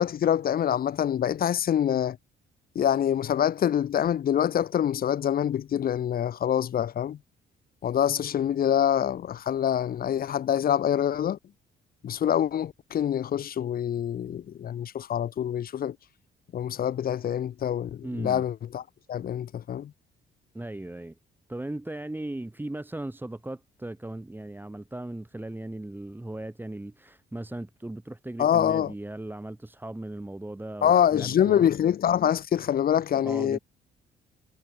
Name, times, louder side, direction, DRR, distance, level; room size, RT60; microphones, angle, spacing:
voice 1, 0.0-2.2 2.8-7.2 7.8-11.4 12.0-16.0 16.5-18.8 19.1-19.9 28.4-28.9 30.8-33.6, left 9 dB, 50° left, 0.6 m, -25 dB
voice 2, 18.0-18.4 20.5-21.2 21.5-31.7 33.1-33.6, right 1 dB, 10° right, 1.8 m, -37 dB
cardioid pair, 90°, 20 cm